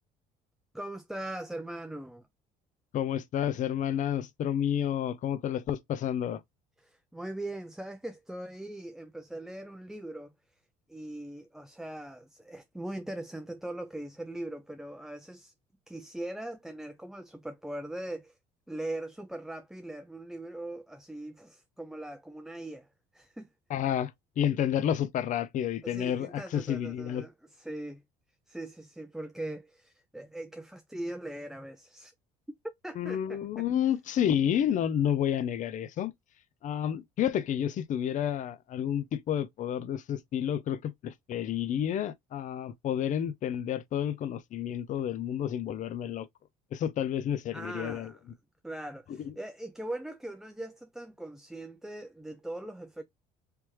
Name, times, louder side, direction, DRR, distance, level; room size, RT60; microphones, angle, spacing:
voice 1, 0.7-2.2 6.8-10.3 10.9-15.5 15.9-18.4 18.7-22.9 23.1-23.5 25.8-28.0 28.5-32.1 32.8-33.7 47.5-48.2 48.6-53.0, right 1 dB, 5° right, 0.4 m, -40 dB
voice 2, 2.9-6.4 23.7-27.3 33.0-36.1 36.6-46.3 46.7-48.1 49.2-49.3, left 10 dB, 50° left, 0.6 m, -30 dB
3.3 x 3.0 x 3.0 m
supercardioid pair, 95°, 17 cm